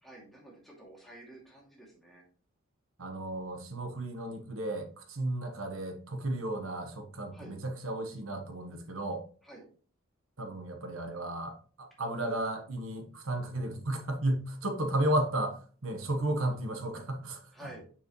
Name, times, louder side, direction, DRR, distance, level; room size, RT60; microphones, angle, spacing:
voice 1, 0.0-2.2 7.3-7.6 9.4-9.7 12.2-12.5 17.5-17.8, right 1 dB, ahead, 2.3 m, -51 dB
voice 2, 3.0-9.2 10.4-17.4, right 1 dB, 75° right, 1.2 m, -33 dB
7.0 x 5.6 x 3.0 m
head